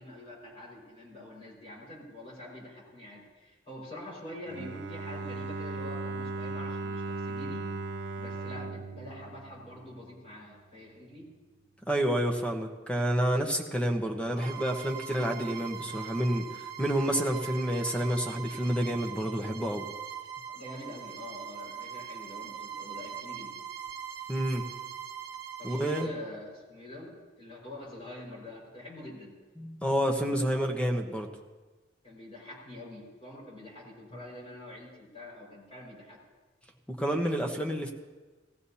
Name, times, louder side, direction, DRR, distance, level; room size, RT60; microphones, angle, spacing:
voice 1, 0.0-7.7 8.2-11.3 14.3-14.5 20.5-23.6 25.6-29.3 32.0-36.2, left 1 dB, 35° left, -4 dB, 5.1 m, -45 dB
Bowed string instrument, 4.5-10.4, right 3 dB, 80° right, 0.6 m, -37 dB
voice 2, 11.9-19.9 24.3-24.6 25.6-26.1 29.6-31.3 36.9-37.9, equal, 5° left, 3 dB, 1.1 m, -29 dB
Bowed string instrument 2, 14.4-26.2, right 8 dB, 55° right, 1.1 m, -41 dB
18.5 x 15.0 x 2.8 m, 1.3 s
head